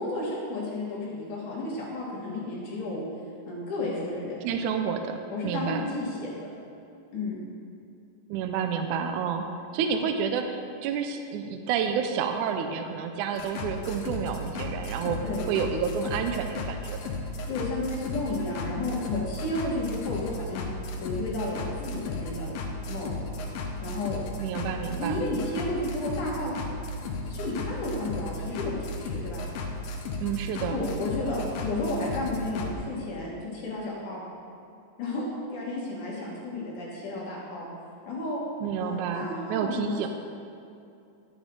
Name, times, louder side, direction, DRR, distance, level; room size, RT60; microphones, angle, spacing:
voice 1, 0.0-3.1 3.5-4.4 5.3-6.3 7.1-7.4 15.2-15.5 17.5-20.6 21.0-22.5 22.9-23.2 23.8-24.2 25.0-26.6 27.3-29.4 30.7-34.2 35.0-37.7 38.1-38.4 38.8-40.1, left 2 dB, 65° left, -5 dB, 2.8 m, -32 dB
voice 2, 4.4-5.9 8.3-15.2 15.5-17.0 24.4-25.2 30.2-30.8 38.6-40.1, right 7 dB, 85° right, 6 dB, 1.8 m, -30 dB
sound 1, 13.4-32.7, left 2 dB, 80° left, 2.6 m, -35 dB
11.0 x 7.3 x 3.8 m, 2.6 s
omnidirectional pair, 4.1 m